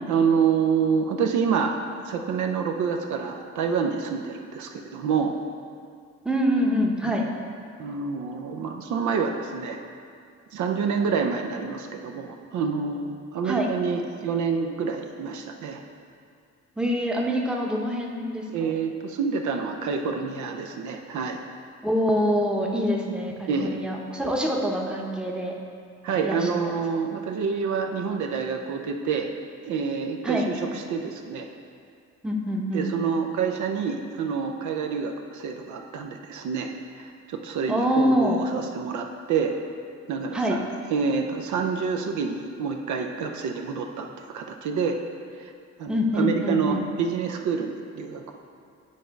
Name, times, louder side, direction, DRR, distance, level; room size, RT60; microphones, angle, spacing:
voice 1, 0.1-1.7 2.0-5.3 7.8-9.8 10.5-15.8 18.5-21.4 23.5-23.7 26.0-29.3 29.6-31.5 32.7-36.7 37.0-39.5 40.1-40.6 40.9-44.1 44.3-45.0 45.8-48.3, right 6 dB, 75° right, 3 dB, 0.7 m, -27 dB
voice 2, 6.2-7.2 13.4-13.7 16.8-18.7 21.8-25.5 26.2-26.5 30.2-30.5 32.2-32.9 37.7-38.4 40.3-40.6 45.9-46.8, equal, 5° right, -1 dB, 0.8 m, -25 dB
8.5 x 3.3 x 5.1 m, 2.3 s
cardioid pair, 90°, 30 cm